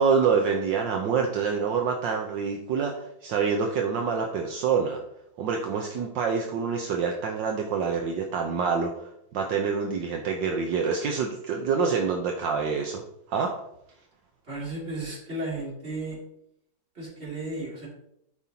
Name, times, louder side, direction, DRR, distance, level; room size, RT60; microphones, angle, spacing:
voice 1, 0.0-5.0 5.4-9.1 9.3-13.0 13.3-13.5, right 5 dB, 75° right, 2 dB, 1.5 m, -26 dB
voice 2, 14.5-16.2 16.9-17.9, right 2 dB, 30° right, -4 dB, 3.0 m, -34 dB
13.0 x 5.4 x 2.9 m, 0.76 s
omnidirectional pair, 2.1 m